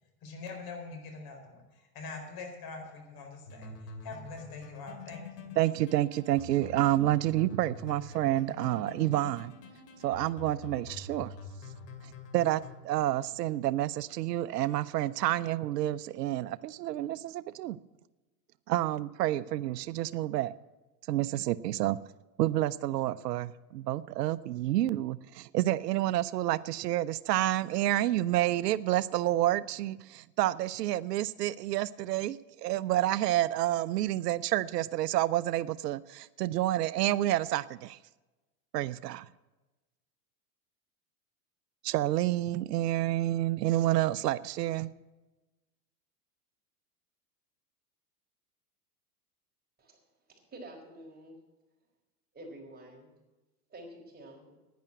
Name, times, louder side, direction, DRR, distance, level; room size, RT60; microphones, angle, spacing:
voice 1, 0.2-5.5, left 4 dB, 50° left, 3 dB, 4.4 m, -44 dB
sound 1, 3.5-12.8, left 3 dB, 85° left, 2.6 m, -46 dB
voice 2, 5.6-9.5 10.0-11.3 12.3-17.8 18.7-20.5 21.1-22.0 22.4-38.0 38.7-39.3 41.8-44.9, right 14 dB, 85° right, 17 dB, 0.6 m, -29 dB
voice 3, 50.5-51.4 52.3-53.1 53.7-54.5, right 1 dB, 20° right, -1 dB, 4.9 m, -48 dB
10.5 x 10.5 x 7.6 m, 1.1 s
hypercardioid pair, 100°, 47 cm